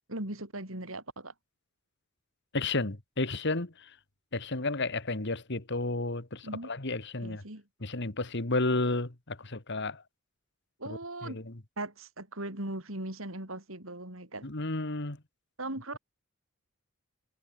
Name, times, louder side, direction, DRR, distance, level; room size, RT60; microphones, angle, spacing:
voice 1, 0.1-1.3 6.4-6.7 7.2-7.6 10.8-11.4 11.8-14.5 15.6-16.0, right 2 dB, 70° right, 5.5 m, -39 dB
voice 2, 2.5-3.7 4.3-7.4 7.8-10.0 10.9-11.5 14.4-15.2, left 2 dB, 55° left, 2.1 m, -32 dB
head